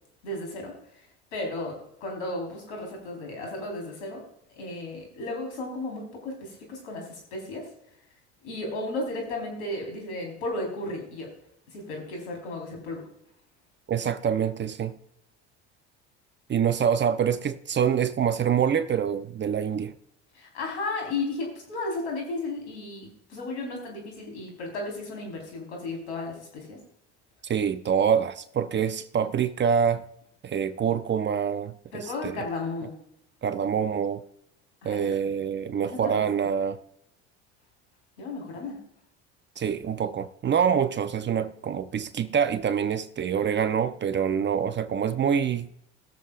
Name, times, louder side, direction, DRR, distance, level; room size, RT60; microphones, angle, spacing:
voice 1, 0.2-1.1 1.3-4.2 4.6-7.7 8.4-11.3 11.7-13.0 20.3-26.8 31.9-32.9 34.8-35.1 35.8-36.5 38.2-38.8, left 2 dB, 80° left, 4.6 m, -34 dB
voice 2, 13.9-15.0 16.5-19.9 27.4-30.0 30.4-32.4 33.4-34.2 34.8-36.8 39.6-45.7, right 7 dB, 35° right, 0.8 m, -26 dB
21.0 x 7.4 x 2.5 m
hypercardioid pair, 75°, 34 cm